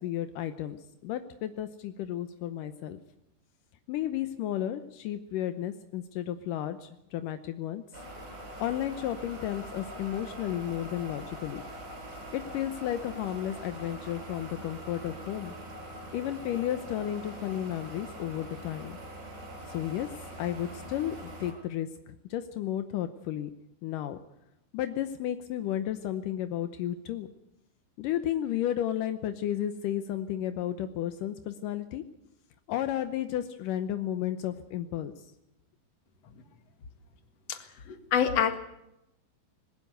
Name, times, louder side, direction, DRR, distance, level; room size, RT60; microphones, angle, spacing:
voice 1, 0.0-3.0 3.9-7.8 8.6-11.6 12.3-15.5 16.1-19.0 19.7-20.1 20.4-23.5 23.8-24.2 24.7-27.3 28.0-32.0 32.7-35.1, left 11 dB, 80° left, 10 dB, 1.9 m, -33 dB
sound 1, 7.9-21.5, equal, 75° right, 9.9 m, -43 dB
voice 2, 37.9-38.6, left 8 dB, 50° left, 8 dB, 2.3 m, -26 dB
20.5 x 17.5 x 8.0 m, 0.85 s
omnidirectional pair, 5.0 m